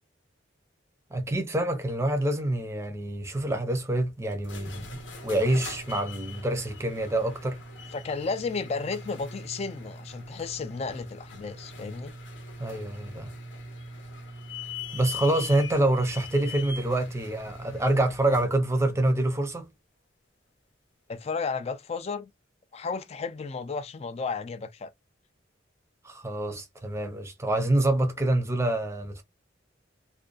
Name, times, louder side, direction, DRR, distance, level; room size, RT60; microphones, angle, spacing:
voice 1, 1.1-7.6 12.6-13.3 14.9-19.7 26.0-29.2, right 1 dB, 15° right, 0.6 m, -26 dB
sound 1, 4.3-18.6, left 2 dB, 75° left, 0.7 m, -41 dB
voice 2, 7.9-12.1 21.1-22.3 22.7-24.9, left 4 dB, 35° left, 0.3 m, -33 dB
2.5 x 2.2 x 2.3 m
head